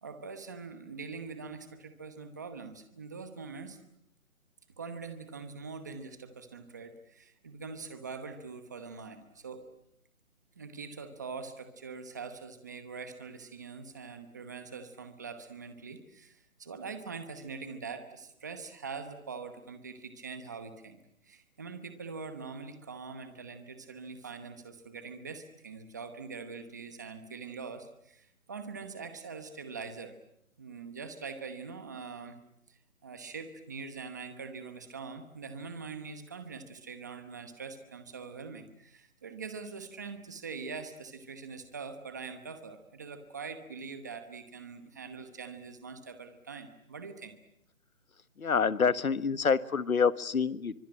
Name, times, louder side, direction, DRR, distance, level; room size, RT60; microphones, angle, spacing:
voice 1, 0.0-3.8 4.8-9.6 10.6-21.0 21.2-30.1 30.6-32.4 32.7-47.4, right 5 dB, 15° right, 9 dB, 1.0 m, -43 dB
voice 2, 48.4-50.7, left 6 dB, 85° left, 16 dB, 1.5 m, -27 dB
24.5 x 23.5 x 8.8 m, 0.78 s
hypercardioid pair, 175°, 41 cm